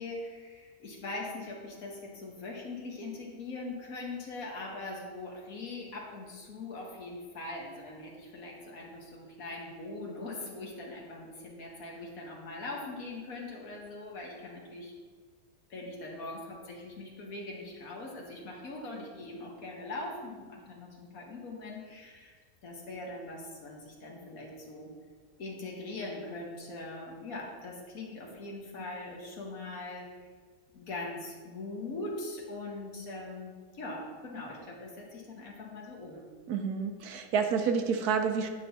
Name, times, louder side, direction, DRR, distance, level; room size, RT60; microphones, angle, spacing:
voice 1, 0.0-14.9 15.7-22.4 22.6-24.9 25.4-30.1 30.7-36.3, left 2 dB, 60° left, -1 dB, 1.5 m, -41 dB
voice 2, 36.5-38.5, right 6 dB, 75° right, 6 dB, 1.1 m, -29 dB
9.0 x 6.0 x 2.7 m, 1.5 s
omnidirectional pair, 1.7 m